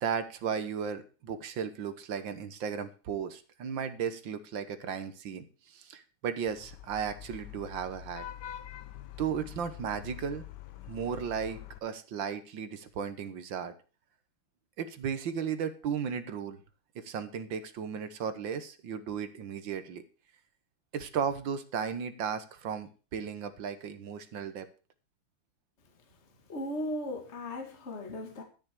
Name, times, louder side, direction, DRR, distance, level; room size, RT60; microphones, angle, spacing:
voice 1, 0.0-8.3 9.2-10.5 10.9-13.7 14.8-16.6 17.0-20.0 20.9-24.7, right 7 dB, 70° right, 1.8 m, -35 dB
Vehicle horn car horn honking / Traffic noise roadway noise, 6.5-11.8, left 12 dB, 65° left, 1.3 m, -45 dB
voice 2, 26.5-28.4, left 1 dB, 35° left, 2.0 m, -36 dB
13.0 x 6.6 x 6.6 m
omnidirectional pair, 2.2 m